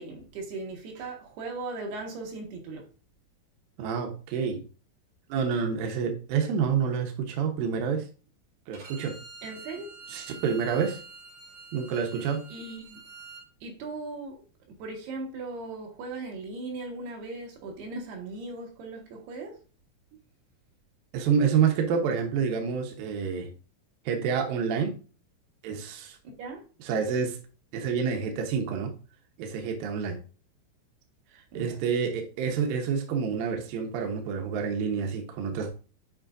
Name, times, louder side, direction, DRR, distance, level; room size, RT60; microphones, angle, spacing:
voice 1, 0.0-2.9 9.4-9.9 12.5-13.0 13.6-14.4 14.7-19.6 26.2-26.6 31.5-31.8, right 3 dB, 65° right, 3.1 m, -38 dB
voice 2, 3.8-4.7 5.3-8.1 8.7-9.2 10.1-11.0 11.7-12.5 21.1-23.5 24.1-25.0 25.6-26.2 26.8-27.4 27.7-28.9 29.4-30.2 31.5-35.7, right 6 dB, 85° right, 2.0 m, -28 dB
Bowed string instrument, 8.7-13.4, right 4 dB, 40° right, 2.8 m, -46 dB
8.7 x 5.0 x 2.5 m
omnidirectional pair, 5.6 m